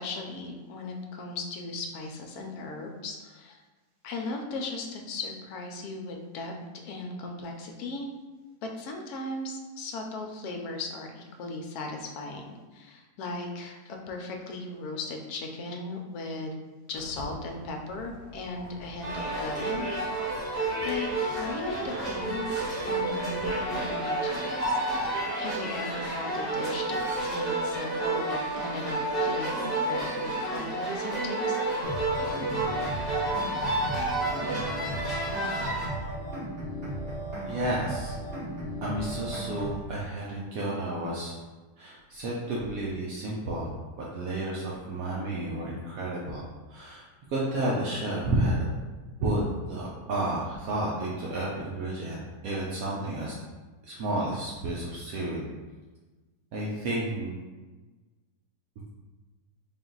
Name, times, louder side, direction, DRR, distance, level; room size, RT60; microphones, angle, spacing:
voice 1, 0.0-3.6 4.0-6.5 6.8-8.1 8.6-16.6 16.9-20.4 20.8-24.8 25.4-31.6 33.2-33.4, left 2 dB, 75° left, 2 dB, 1.1 m, -37 dB
Walk footsteps, 17.0-23.9, left 1 dB, 50° left, 0.7 m, -47 dB
sound 1, 19.0-35.9, right 2 dB, ahead, 1.0 m, -30 dB
sound 2, 31.8-39.8, right 1 dB, 40° right, 1.3 m, -35 dB
voice 2, 37.5-38.1 38.8-41.3 41.8-43.7 44.0-46.4 46.7-47.0 47.3-48.6 49.2-49.4 49.7-53.4 53.8-55.5 56.5-57.3, right 1 dB, 70° right, -5 dB, 1.0 m, -31 dB
3.7 x 2.5 x 3.8 m, 1.3 s
omnidirectional pair, 1.7 m